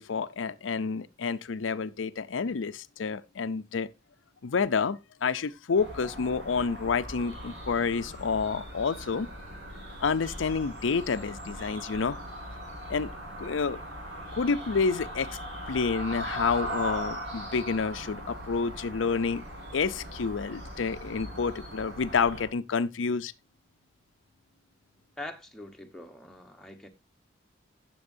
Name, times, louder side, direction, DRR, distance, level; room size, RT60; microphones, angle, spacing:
voice 1, 0.0-3.9 4.4-9.3 10.0-12.2 12.9-13.1 13.4-13.8 14.3-15.3 15.7-19.4 19.7-23.3, left 5 dB, 90° left, 0.5 m, -29 dB
sound 1, 5.7-22.5, equal, 60° right, 5.2 m, -40 dB
voice 2, 25.2-26.9, left 1 dB, 5° left, 1.0 m, -43 dB
16.5 x 7.0 x 2.6 m
head